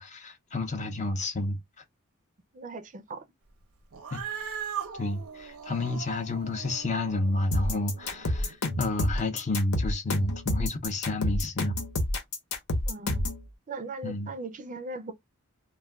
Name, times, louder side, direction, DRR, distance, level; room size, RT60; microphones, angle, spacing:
voice 1, 0.0-1.6 4.1-4.2 4.9-11.8 14.0-14.3, left 2 dB, 35° left, 0.5 m, -30 dB
voice 2, 2.5-3.2 12.9-13.2 13.7-15.1, right 2 dB, 35° right, 0.4 m, -38 dB
Cat, 3.9-8.5, right 7 dB, 80° right, 0.7 m, -40 dB
sound 1, 7.5-13.4, left 1 dB, 80° left, 0.9 m, -28 dB
2.3 x 2.2 x 3.3 m
head